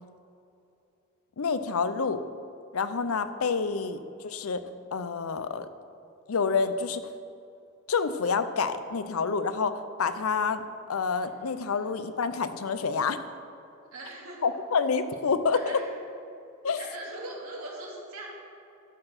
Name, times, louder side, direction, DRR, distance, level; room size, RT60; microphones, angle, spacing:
voice 1, 1.4-2.2 2.7-4.6 4.9-5.7 6.3-7.0 7.9-10.6 10.9-13.2 14.4-15.8 16.6-16.8, left 5 dB, 80° left, 12 dB, 0.6 m, -28 dB
voice 2, 13.9-14.4 15.5-15.9 16.7-18.3, right 2 dB, 85° right, -3 dB, 2.5 m, -41 dB
12.0 x 6.8 x 5.9 m, 2.7 s
head